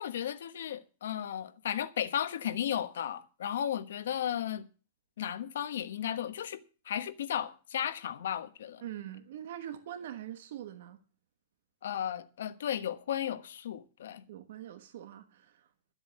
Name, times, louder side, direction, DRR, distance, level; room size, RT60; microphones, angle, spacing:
voice 1, 0.0-4.6 5.2-6.6 6.9-8.8 11.8-14.2, left 10 dB, 75° left, 1.1 m, -34 dB
voice 2, 8.8-11.0 14.3-15.7, right 11 dB, 60° right, 1.2 m, -43 dB
12.5 x 8.0 x 7.3 m
supercardioid pair, 175°, 0 cm